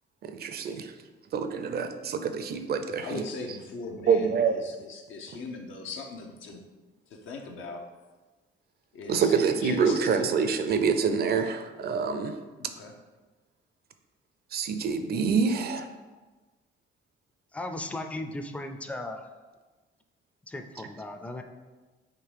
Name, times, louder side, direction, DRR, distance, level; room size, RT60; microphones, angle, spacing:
voice 1, 0.2-0.9 1.3-3.2 4.0-4.5 9.1-12.3 14.5-15.9, right 6 dB, 55° right, 8 dB, 0.5 m, -26 dB
voice 2, 3.0-6.6 7.1-7.9 8.9-10.4 12.6-12.9, left 3 dB, 80° left, 3 dB, 0.7 m, -39 dB
voice 3, 17.5-19.3 20.5-21.4, left 1 dB, 5° left, 6 dB, 0.4 m, -36 dB
3.7 x 3.0 x 4.6 m, 1.3 s
cardioid pair, 90°, 20 cm